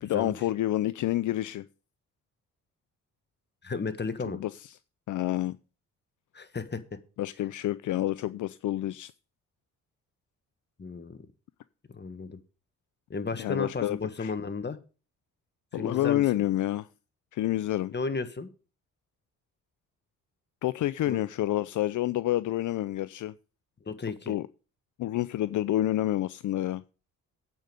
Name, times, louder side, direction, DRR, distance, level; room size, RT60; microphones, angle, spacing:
voice 1, 0.0-1.6 4.2-4.5 5.1-5.6 7.2-9.1 13.4-14.3 15.7-16.9 17.3-17.9 20.6-23.3 24.3-24.5 25.0-26.8, left 14 dB, 65° left, 0.5 m, -28 dB
voice 2, 3.6-4.4 6.3-7.0 10.8-11.2 11.9-12.4 13.1-14.8 15.8-16.4 17.9-18.5 21.1-21.2 23.8-24.3, left 4 dB, 35° left, 1.5 m, -33 dB
8.7 x 5.3 x 7.9 m
supercardioid pair, 60°, 32 cm